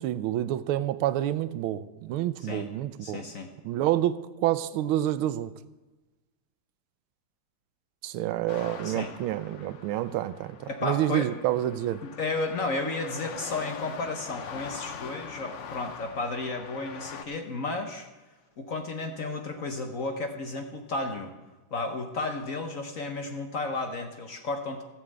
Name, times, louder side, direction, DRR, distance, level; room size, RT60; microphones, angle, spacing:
voice 1, 0.0-3.2 3.6-5.5 8.0-12.0, right 13 dB, 85° right, 1.5 m, -28 dB
voice 2, 3.0-3.5 8.8-9.1 10.7-11.3 12.0-18.1 18.6-21.3 21.7-24.8, left 3 dB, 50° left, 1.1 m, -33 dB
sound 1, 8.5-17.2, left 7 dB, 70° left, 0.7 m, -43 dB
14.5 x 6.4 x 7.9 m
omnidirectional pair, 2.3 m